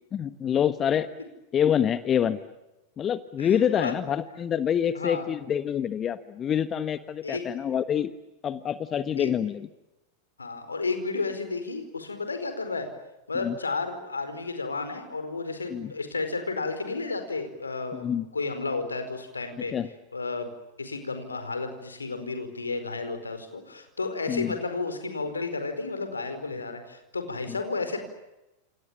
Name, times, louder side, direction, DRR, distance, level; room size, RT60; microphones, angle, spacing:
voice 1, 0.1-1.1 1.5-2.4 3.0-8.1 8.4-9.7 13.4-13.5 15.7-15.9 17.9-18.3 19.6-19.9 24.3-24.6 27.5-27.6, left 9 dB, 25° left, 13 dB, 1.3 m, -26 dB
voice 2, 3.4-3.9 4.9-5.3 7.2-7.4 9.2-9.3 10.4-12.9 13.3-19.7 20.1-20.5 20.8-28.0, left 3 dB, 75° left, 8 dB, 4.8 m, -32 dB
29.5 x 28.5 x 7.1 m, 0.96 s
figure-of-eight pair, 90°, 0 cm